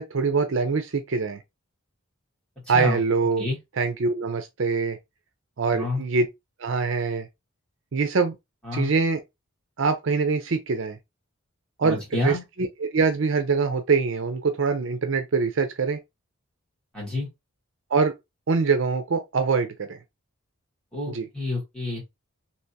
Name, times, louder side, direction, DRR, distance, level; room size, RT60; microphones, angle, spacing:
voice 1, 0.0-1.4 2.7-3.4 3.8-5.0 5.6-6.3 6.6-7.3 7.9-8.4 8.7-9.2 9.8-11.0 11.8-16.0 17.9-18.1 18.5-20.0 21.1-21.3, right 4 dB, 60° right, 0.5 m, -24 dB
voice 2, 11.8-12.4 16.9-17.3 20.9-22.0, left 2 dB, 5° left, 1.7 m, -29 dB
3.4 x 2.8 x 2.7 m
head